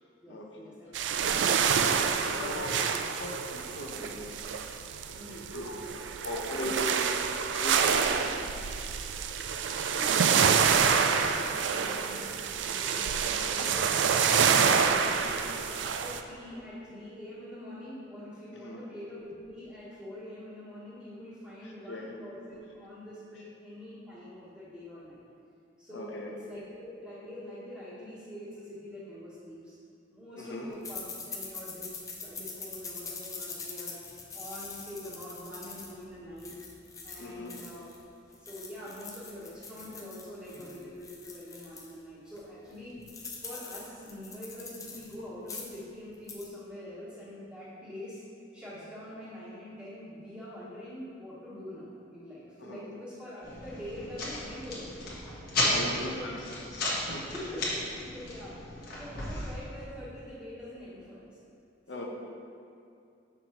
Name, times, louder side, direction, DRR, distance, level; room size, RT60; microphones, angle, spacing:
voice 1, 0.2-1.2 2.1-3.0 5.1-5.5 9.8-11.1 11.4-15.3 15.6-25.2 25.8-29.7 30.1-31.9 32.2-34.0 34.3-36.5 37.0-37.9 38.2-43.0 43.3-48.2 48.5-55.0 55.5-56.3 57.0-58.6 59.0-61.3 61.9-62.0, left 1 dB, 5° right, -13 dB, 1.3 m, -45 dB
sound 1, 0.9-16.2, right 6 dB, 75° right, 0.3 m, -27 dB
voice 2, 1.9-4.3 5.1-5.8 6.2-8.5 13.5-13.7 18.5-18.8 21.6-22.1 25.9-26.3 30.4-30.7 37.2-37.6 52.6-52.8 55.7-56.4 56.7-57.3 61.9-62.0, left 1 dB, 70° left, 0 dB, 0.9 m, -39 dB
sound 2, 30.8-38.0 38.3-41.9 42.4-42.5 42.7-45.1 45.4-45.8 46.1-46.5, left 4 dB, 20° left, 0.5 m, -43 dB
sound 3, 53.4-59.6, left 1 dB, 55° left, 1.4 m, -34 dB
7.1 x 5.7 x 3.0 m, 2.5 s
head